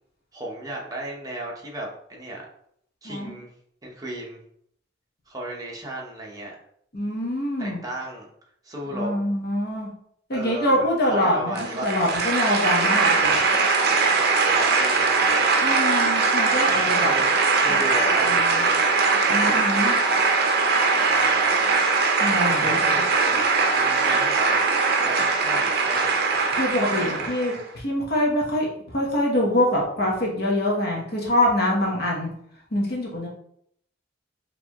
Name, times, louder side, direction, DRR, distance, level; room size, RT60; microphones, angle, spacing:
voice 1, 0.3-2.4 3.0-3.5 3.8-4.4 5.3-6.5 7.6-8.3 8.6-9.1 10.3-12.0 14.4-15.5 16.9-18.4 21.1-21.5 22.5-24.7 25.0-26.2 26.9-27.5, right 1 dB, 20° right, -2 dB, 0.9 m, -35 dB
voice 2, 6.9-7.8 8.9-9.9 10.3-13.4 15.6-17.1 17.7-17.8 18.2-18.7 19.3-20.0 22.2-22.8 26.5-32.3 32.7-33.3, left 1 dB, 55° left, -2 dB, 1.1 m, -25 dB
sound 1, 11.6-27.6, right 4 dB, 55° right, 0.6 m, -21 dB
4.5 x 2.9 x 2.9 m, 0.69 s
head